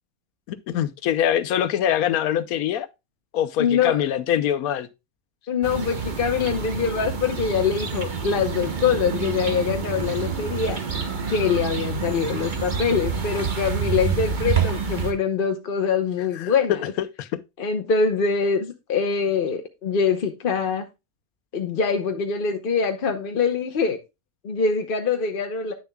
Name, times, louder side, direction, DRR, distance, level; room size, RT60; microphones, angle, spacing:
voice 1, 0.5-2.9 3.3-4.9 16.4-16.8 17.2-17.3, left 10 dB, 85° left, 1.2 m, -24 dB
voice 2, 3.6-4.0 5.5-10.8 11.3-16.8 17.6-20.9 21.5-24.0 24.4-25.7, left 6 dB, 50° left, 0.8 m, -24 dB
sound 1, 5.6-15.1, right 6 dB, 35° right, 1.1 m, -28 dB
9.9 x 6.9 x 2.2 m
omnidirectional pair, 1.5 m